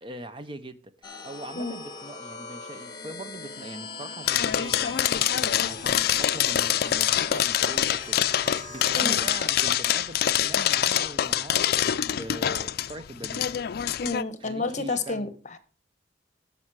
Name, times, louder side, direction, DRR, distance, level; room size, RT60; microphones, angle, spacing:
voice 1, 0.0-13.5 14.4-15.3, right 2 dB, 30° right, 0.7 m, -42 dB
sound 1, 1.0-9.4, left 3 dB, 25° left, 1.6 m, -40 dB
sound 2, 4.3-14.2, left 10 dB, 55° left, 0.4 m, -25 dB
sound 3, 5.4-10.9, right 3 dB, 45° right, 1.2 m, -51 dB
voice 2, 14.0-15.6, left 3 dB, 40° left, 1.0 m, -30 dB
13.5 x 5.5 x 4.7 m
head